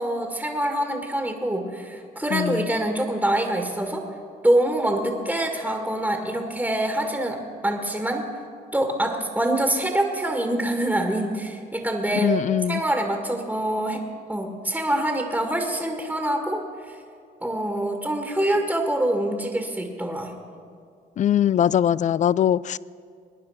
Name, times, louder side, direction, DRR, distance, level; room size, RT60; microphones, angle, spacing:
voice 1, 0.0-4.1 4.4-8.2 8.7-12.3 12.7-14.0 14.3-17.0 17.4-20.4, right 1 dB, 5° right, 2.0 m, -25 dB
voice 2, 2.3-2.7 12.2-12.8 21.2-22.8, left 10 dB, 40° left, 0.4 m, -21 dB
22.5 x 9.8 x 5.9 m
supercardioid pair, 70°, 19 cm